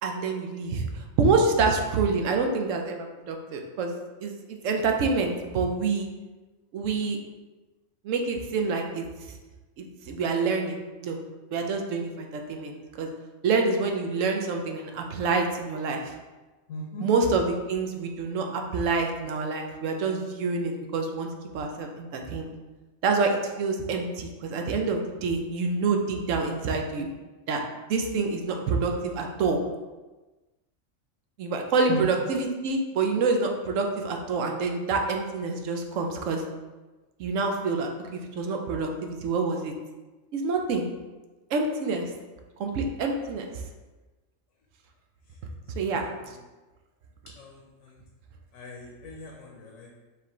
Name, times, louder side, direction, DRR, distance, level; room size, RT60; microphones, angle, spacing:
voice 1, 0.0-3.9 4.2-6.1 6.7-7.2 8.0-9.0 9.8-11.2 11.5-13.1 13.4-16.1 17.0-21.3 21.5-22.5 23.0-27.1 27.5-27.6 27.9-29.6 31.4-36.4 37.2-39.7 40.3-40.8 41.5-42.1 42.6-43.5 45.8-46.0, right 4 dB, 75° right, 3 dB, 1.0 m, -27 dB
voice 2, 16.7-17.1 31.9-32.1 45.7-46.4 47.4-48.0 48.5-49.9, left 1 dB, 75° left, -1 dB, 1.1 m, -38 dB
4.7 x 3.3 x 3.0 m, 1.2 s
omnidirectional pair, 1.4 m